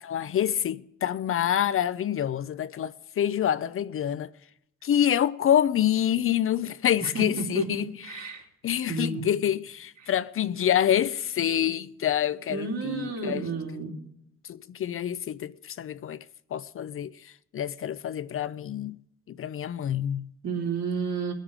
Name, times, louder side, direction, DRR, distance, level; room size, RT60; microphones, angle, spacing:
voice 1, 0.0-4.3 4.8-7.9 8.6-13.5 14.5-16.2 16.5-17.1 17.5-19.0 19.3-20.3, left 10 dB, 45° left, 0.5 m, -27 dB
voice 2, 7.0-7.7 8.0-8.4 8.9-9.2 10.0-10.1 12.5-13.9 20.4-21.3, right 4 dB, 65° right, 3.3 m, -31 dB
20.0 x 9.1 x 5.1 m
supercardioid pair, 60°, 30 cm